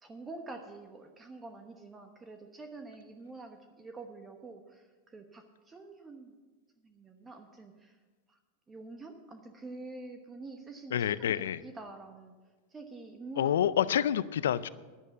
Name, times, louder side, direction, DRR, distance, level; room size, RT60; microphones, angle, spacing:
voice 1, 0.0-6.4 6.8-8.0 8.3-8.4 8.7-11.3 11.6-12.4 12.7-13.5 13.9-14.0 14.6-14.7, right 3 dB, 20° right, 5 dB, 1.1 m, -47 dB
voice 2, 10.9-11.6 13.4-14.7, left 10 dB, 80° left, 17 dB, 0.4 m, -28 dB
11.0 x 8.5 x 6.8 m, 1.3 s
hypercardioid pair, 105°, 0 cm